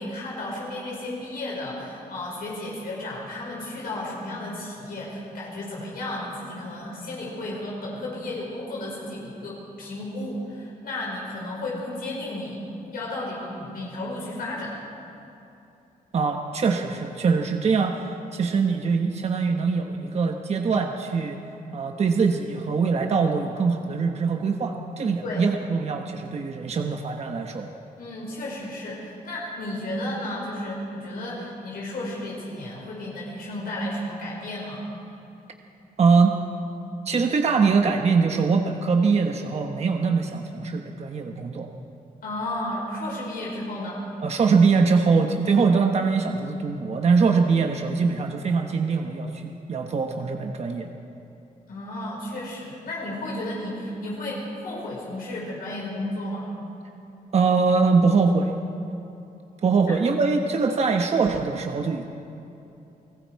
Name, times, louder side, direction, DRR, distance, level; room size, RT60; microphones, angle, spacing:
voice 1, 0.0-12.6 12.9-14.8 25.2-25.4 28.0-34.9 42.2-44.0 51.7-56.5 59.9-60.0, left 1 dB, 75° left, -4 dB, 5.3 m, -33 dB
voice 2, 16.1-21.4 21.7-27.7 36.0-36.3 37.1-41.7 44.2-50.9 57.3-58.5 59.6-62.0, right 4 dB, 45° right, 3 dB, 1.2 m, -22 dB
29.5 x 20.0 x 4.7 m, 2.9 s
wide cardioid pair, 145°, 15 cm